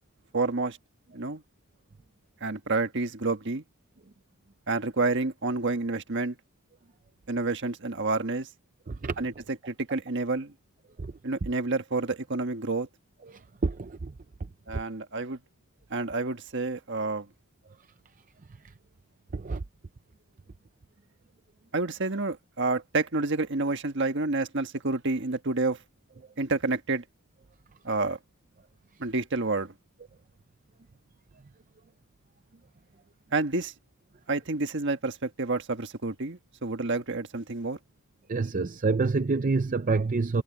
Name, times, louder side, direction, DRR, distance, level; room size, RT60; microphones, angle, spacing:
voice 1, 0.3-0.8 1.1-1.4 2.4-3.6 4.7-6.4 7.3-8.5 9.2-9.3 9.7-10.5 11.2-12.9 14.7-15.4 15.9-17.3 21.7-25.8 26.4-27.0 27.8-28.2 29.0-29.7 33.3-33.7 34.3-37.8, right 3 dB, 55° right, 1.5 m, -29 dB
voice 2, 8.9-9.2 11.0-11.1 13.3-14.1 19.3-19.6 38.3-40.4, right 4 dB, 35° right, 0.5 m, -27 dB
head